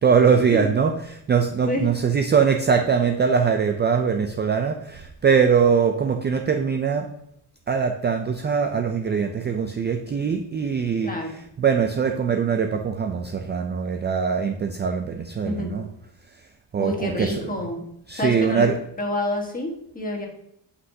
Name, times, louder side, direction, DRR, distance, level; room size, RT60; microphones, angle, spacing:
voice 1, 0.0-7.1 7.7-15.9 16.3-16.5 16.7-17.5 18.1-18.8, right 6 dB, 25° right, 5 dB, 0.4 m, -22 dB
voice 2, 11.0-11.4 15.4-15.8 16.8-17.8 18.1-18.7 19.0-20.3, left 1 dB, 20° left, 1 dB, 1.4 m, -28 dB
8.1 x 5.6 x 2.7 m, 0.76 s
cardioid pair, 135°, 43 cm